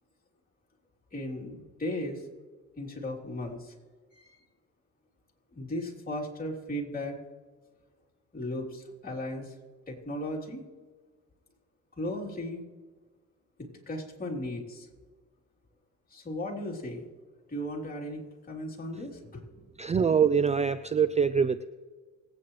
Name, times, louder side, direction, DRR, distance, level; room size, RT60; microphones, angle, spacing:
voice 1, 1.1-2.2 2.8-3.7 4.1-4.4 5.5-7.2 8.3-9.5 9.9-10.6 12.0-12.6 13.6-14.9 16.1-17.0 17.5-19.4, left 1 dB, 30° left, -2 dB, 3.2 m, -36 dB
voice 2, 19.8-21.6, right 6 dB, 25° right, 13 dB, 0.4 m, -24 dB
25.0 x 8.7 x 3.1 m, 1.4 s
cardioid pair, 90°, 30 cm